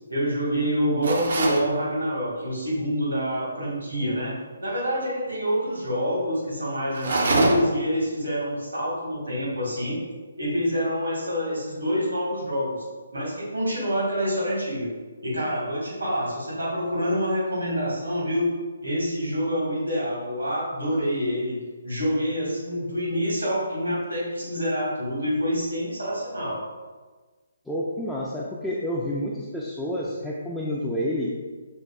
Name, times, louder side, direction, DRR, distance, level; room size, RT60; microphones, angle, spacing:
voice 1, 0.1-4.3 4.6-10.0 10.4-12.8 13.1-14.9 15.2-18.5 18.8-21.6 21.8-26.6, equal, 80° right, -6 dB, 1.4 m, -26 dB
sound 1, 1.0-1.7 6.9-7.9, right 2 dB, 55° right, 0.5 m, -24 dB
voice 2, 27.7-31.3, equal, 5° left, -7 dB, 0.3 m, -29 dB
5.3 x 2.2 x 2.3 m, 1.4 s
figure-of-eight pair, 140°, 0 cm